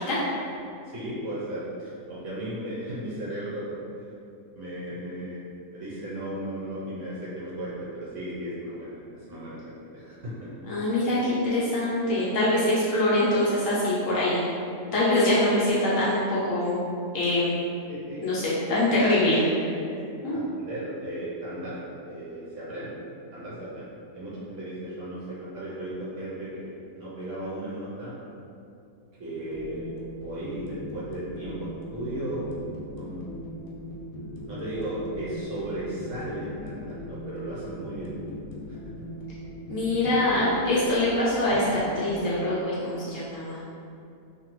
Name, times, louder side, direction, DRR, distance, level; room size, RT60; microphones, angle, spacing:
voice 1, 0.8-3.8 4.5-10.7 17.9-18.2 20.3-21.8 22.1-22.9 23.3-28.1 29.2-29.9 30.2-32.6 33.0-33.3 34.5-38.1, right 1 dB, 65° right, -9 dB, 0.8 m, -36 dB
voice 2, 10.7-14.4 14.9-16.8 17.1-17.6 18.2-19.4 20.2-20.4 39.7-43.6, left 1 dB, 65° left, -8 dB, 0.8 m, -24 dB
sound 1, 29.5-42.4, equal, 85° left, 1.2 m, -39 dB
2.6 x 2.5 x 3.0 m, 2.6 s
omnidirectional pair, 1.7 m